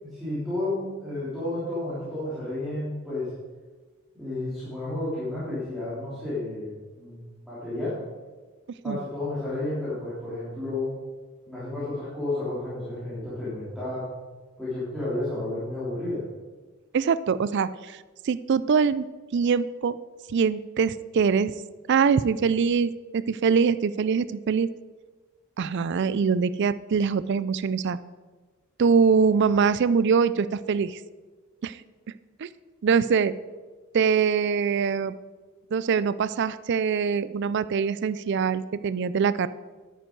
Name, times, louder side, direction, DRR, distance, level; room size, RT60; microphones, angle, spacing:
voice 1, 0.0-3.3 4.2-8.0 8.8-10.9 11.5-14.1 14.6-16.2, left 2 dB, ahead, -13 dB, 3.3 m, -31 dB
voice 2, 16.9-18.0 18.2-19.1 19.3-20.0 20.3-21.5 21.9-24.7 25.6-28.0 28.8-31.0 31.6-31.8 32.4-32.5 32.8-33.3 33.9-35.1 35.7-39.5, right 6 dB, 50° right, 15 dB, 0.4 m, -23 dB
10.5 x 9.2 x 4.6 m, 1.3 s
head